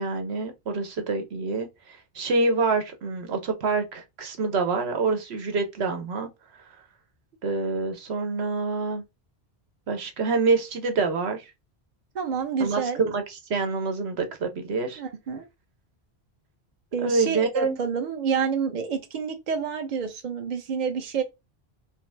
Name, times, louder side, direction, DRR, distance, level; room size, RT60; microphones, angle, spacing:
voice 1, 0.0-1.7 2.1-6.3 7.4-9.0 9.9-11.4 12.6-13.2 13.5-15.0 17.0-17.8, right 3 dB, 85° right, 1.1 m, -26 dB
voice 2, 12.1-13.1 15.0-15.4 16.9-21.2, right 6 dB, 50° right, 0.9 m, -28 dB
5.6 x 2.0 x 3.2 m
omnidirectional pair, 1.1 m